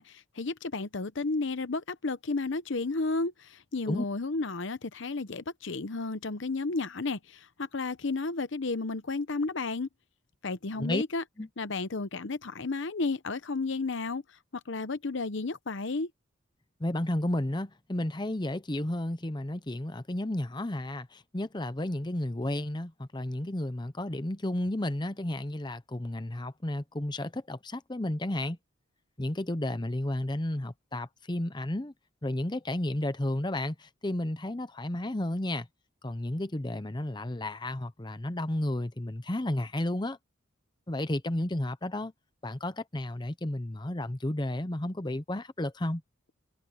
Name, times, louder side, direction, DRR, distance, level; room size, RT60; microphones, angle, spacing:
voice 1, 0.0-9.9 10.4-11.2 11.6-14.2 14.7-16.1, left 3 dB, 60° left, 0.8 m, -32 dB
voice 2, 16.8-28.6 29.2-31.9 32.2-35.7 36.0-40.2 40.9-42.1 42.4-46.0, left 1 dB, 20° left, 0.8 m, -32 dB
head